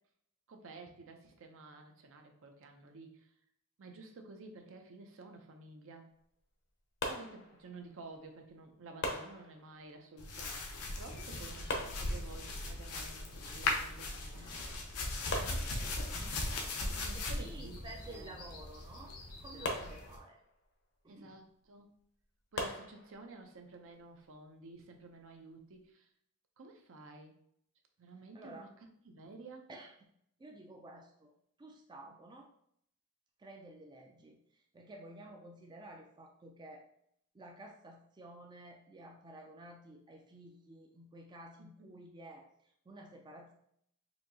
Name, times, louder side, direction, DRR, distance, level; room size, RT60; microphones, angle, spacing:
voice 1, 0.5-3.3 3.8-6.1 7.0-16.1 16.8-18.4 21.1-21.9 22.5-26.1 26.6-27.3 28.0-28.7 29.0-29.7 41.8-41.9, right 3 dB, 65° right, 4 dB, 0.6 m, -52 dB
sound 1, 7.0-8.0 9.0-10.0 11.7-12.7 14.3-14.4 14.7-14.8 15.3-16.4 19.6-20.6 22.6-23.5, left 2 dB, 55° left, 0.7 m, -41 dB
sound 2, 10.2-20.2, left 2 dB, 90° left, 0.7 m, -39 dB
voice 2, 15.5-16.3 17.1-20.4 21.0-21.4 28.3-28.7 29.7-29.9 30.4-31.3 31.6-32.5 33.4-36.9 37.3-43.5, right 1 dB, 20° right, 1 dB, 0.4 m, -52 dB
4.3 x 2.7 x 2.7 m, 0.71 s
head